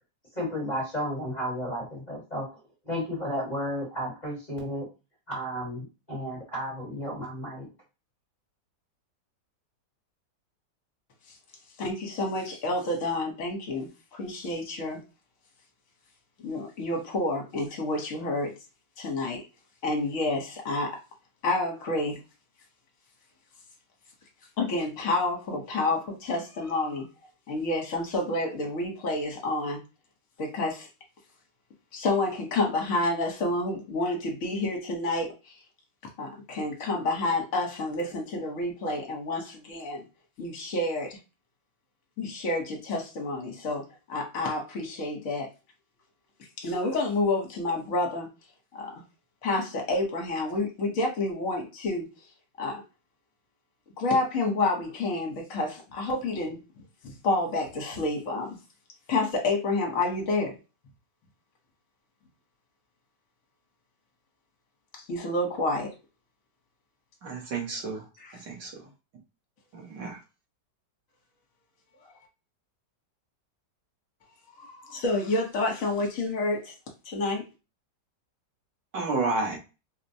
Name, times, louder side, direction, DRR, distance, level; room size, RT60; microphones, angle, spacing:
voice 1, 0.3-4.9 5.3-7.7, equal, 25° left, -3 dB, 1.3 m, -33 dB
voice 2, 11.8-15.0 16.4-18.5 19.0-19.5 19.8-21.0 21.4-22.2 24.6-27.1 27.5-29.8 30.4-30.9 31.9-35.3 36.2-40.0 40.4-41.2 42.2-45.5 46.6-48.3 48.7-48.9 49.4-52.1 52.6-52.8 54.0-56.6 57.0-58.6 59.1-60.6 65.1-65.9 74.6-76.7 77.1-77.5, left 2 dB, 55° left, 2 dB, 1.3 m, -29 dB
voice 3, 67.2-68.1 68.4-68.9 69.7-70.2 78.9-79.6, right 3 dB, 85° right, -1 dB, 1.9 m, -31 dB
4.7 x 2.1 x 2.7 m, 0.29 s
omnidirectional pair, 1.9 m